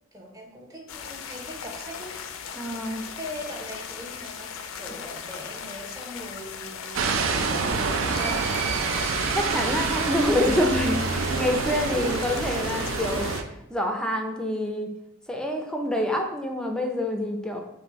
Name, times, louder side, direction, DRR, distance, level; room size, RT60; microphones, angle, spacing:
voice 1, 0.1-2.2 3.1-8.5 11.9-12.3, equal, 20° right, -1 dB, 0.8 m, -40 dB
sound 1, 0.9-13.4, left 7 dB, 85° left, 0.4 m, -38 dB
voice 2, 2.5-3.1 9.3-13.3 13.7-14.9 15.3-17.6, left 1 dB, 5° left, 3 dB, 0.4 m, -26 dB
sound 2, 6.9-13.4, right 4 dB, 80° right, 0.4 m, -27 dB
sound 3, 8.0-11.7, right 4 dB, 65° right, 1.0 m, -36 dB
5.1 x 2.6 x 3.0 m, 0.83 s
head